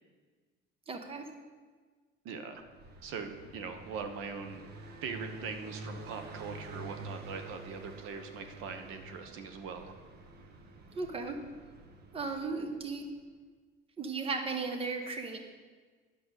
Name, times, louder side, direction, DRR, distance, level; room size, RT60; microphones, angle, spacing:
voice 1, 0.9-1.3 10.9-11.4 12.1-13.0 14.0-15.4, right 4 dB, 25° right, 6 dB, 1.2 m, -35 dB
voice 2, 2.2-2.6 3.0-4.6 5.0-9.9, right 5 dB, 80° right, 7 dB, 1.3 m, -41 dB
Car passing by, 2.6-13.2, right 2 dB, 50° right, 1.2 m, -48 dB
10.0 x 6.7 x 8.2 m, 1.5 s
cardioid pair, 145°, 21 cm